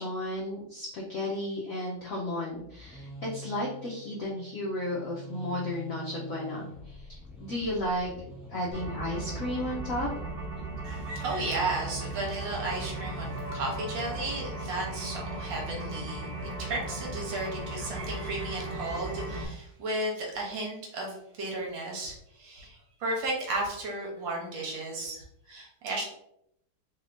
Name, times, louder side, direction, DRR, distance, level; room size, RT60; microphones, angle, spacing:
voice 1, 0.0-7.1 7.4-8.1 8.5-10.1, left 1 dB, 75° left, -4 dB, 0.7 m, -33 dB
sound 1, 2.5-15.6, right 1 dB, ahead, 0.8 m, -45 dB
sound 2, 8.7-19.4, right 2 dB, 90° right, 0.4 m, -37 dB
voice 2, 10.8-16.3 16.6-26.1, right 2 dB, 65° right, -1 dB, 1.6 m, -34 dB
3.5 x 3.5 x 2.5 m, 0.77 s
omnidirectional pair, 2.3 m